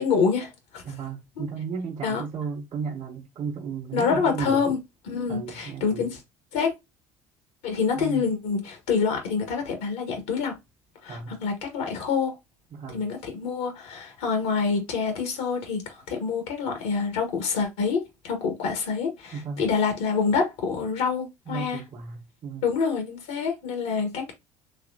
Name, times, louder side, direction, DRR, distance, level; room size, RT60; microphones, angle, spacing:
voice 1, 0.0-0.8 2.0-2.2 3.9-4.8 5.0-6.2 6.5-6.7 7.6-10.5 11.0-12.3 12.9-21.8 22.6-24.3, left 5 dB, 80° left, 1.3 m, -26 dB
voice 2, 0.8-4.7 5.3-6.1 7.9-8.2 11.1-11.3 12.7-13.0 19.3-19.6 21.5-22.7, right 5 dB, 50° right, 1.1 m, -34 dB
4.1 x 3.0 x 2.7 m
hypercardioid pair, 70°, 15 cm